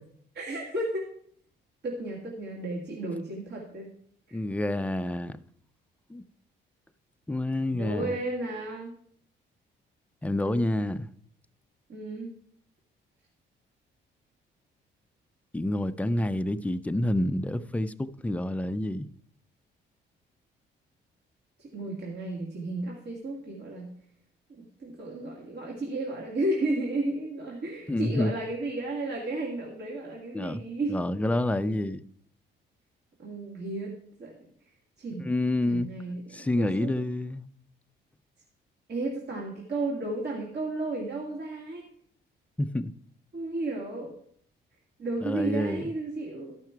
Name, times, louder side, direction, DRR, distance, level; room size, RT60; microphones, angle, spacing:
voice 1, 0.3-1.1 1.8-3.9 4.3-4.4 7.7-8.9 11.9-12.3 21.6-23.9 24.5-31.0 33.2-34.3 35.0-35.3 35.6-36.9 38.9-41.9 43.3-44.1 45.0-46.6, right 2 dB, 55° right, 2.2 m, -33 dB
voice 2, 4.3-5.4 6.1-6.2 7.3-8.2 10.2-11.0 15.5-19.1 27.9-28.3 30.3-30.6 30.9-32.0 35.2-35.9 36.3-37.4 42.6-42.9 45.2-45.9, left 1 dB, 5° left, 0.4 m, -28 dB
12.5 x 5.8 x 4.5 m
cardioid pair, 90°, 20 cm